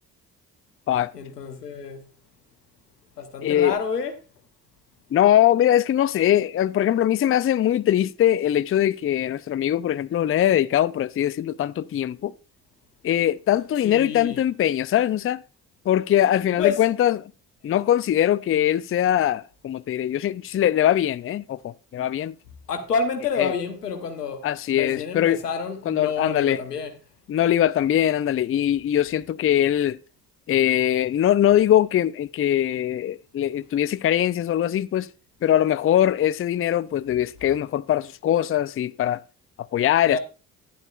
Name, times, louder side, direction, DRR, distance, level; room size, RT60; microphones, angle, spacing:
voice 1, 1.1-2.1 3.2-4.1 13.8-14.4 16.6-16.8 17.7-17.8 22.7-24.5 24.7-27.0 40.1-40.2, left 5 dB, 90° left, 1.0 m, -28 dB
voice 2, 3.4-3.8 5.1-12.3 13.0-15.4 15.9-17.3 17.6-22.3 23.4-23.5 24.4-25.4 25.9-26.6 27.3-30.0 30.5-35.1 35.4-39.2 39.7-40.2, left 11 dB, 30° left, 0.5 m, -21 dB
12.0 x 10.0 x 2.4 m
figure-of-eight pair, 40°, 46 cm